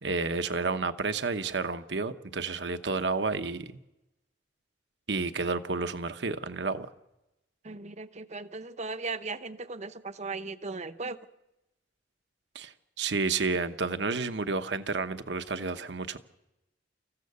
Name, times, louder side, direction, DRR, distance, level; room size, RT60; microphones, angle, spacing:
voice 1, 0.0-3.7 5.1-6.9 12.5-16.2, right 4 dB, 70° right, 1.0 m, -31 dB
voice 2, 7.6-11.2, right 3 dB, 40° right, 0.8 m, -37 dB
25.5 x 15.0 x 6.7 m
head